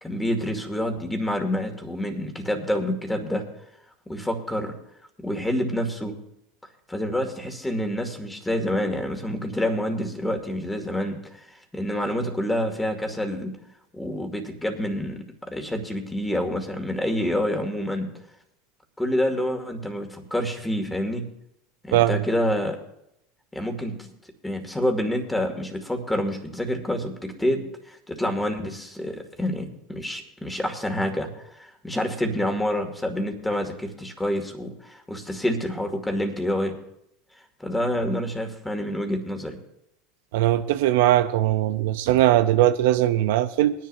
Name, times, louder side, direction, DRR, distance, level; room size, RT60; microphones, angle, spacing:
voice 1, 0.0-3.4 4.1-4.7 5.2-6.1 6.9-13.6 13.9-18.1 19.0-21.3 21.8-22.8 23.5-24.1 24.4-36.7 37.6-39.6, left 1 dB, 10° left, 2.3 m, -27 dB
voice 2, 40.3-43.7, right 13 dB, 75° right, 0.6 m, -20 dB
21.5 x 10.5 x 2.7 m
hypercardioid pair, 95°, 0 cm